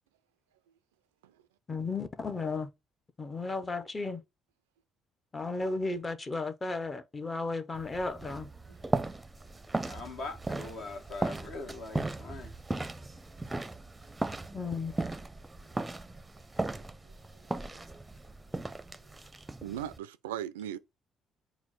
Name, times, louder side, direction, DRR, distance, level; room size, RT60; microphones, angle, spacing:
voice 1, 1.7-2.7 3.2-4.2 5.3-8.5 14.5-14.9, left 3 dB, 25° left, 0.8 m, -34 dB
sound 1, 7.8-20.0, right 2 dB, 15° right, 0.6 m, -37 dB
voice 2, 9.9-12.5, left 3 dB, 60° left, 1.2 m, -41 dB
voice 3, 19.6-20.8, right 11 dB, 80° right, 0.3 m, -37 dB
4.3 x 2.1 x 4.1 m
hypercardioid pair, 50°, 0 cm